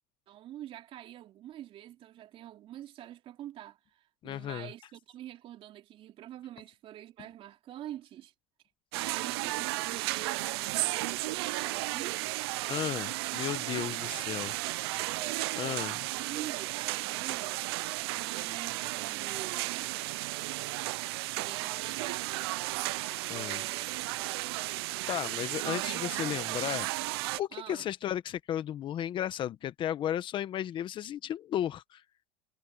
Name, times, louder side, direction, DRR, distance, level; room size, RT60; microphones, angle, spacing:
voice 1, 0.3-8.3 9.0-12.2 15.0-15.6 16.2-20.0 21.4-22.3 23.3-24.8 27.5-27.9, right 12 dB, 45° right, 3.5 m, -46 dB
voice 2, 4.2-4.7 12.7-14.5 15.5-16.1 23.3-23.6 25.1-26.9 27.3-32.0, left 11 dB, 40° left, 1.1 m, -34 dB
sound 1, 8.9-27.4, right 21 dB, 85° right, 0.6 m, -34 dB
supercardioid pair, 125°, 13 cm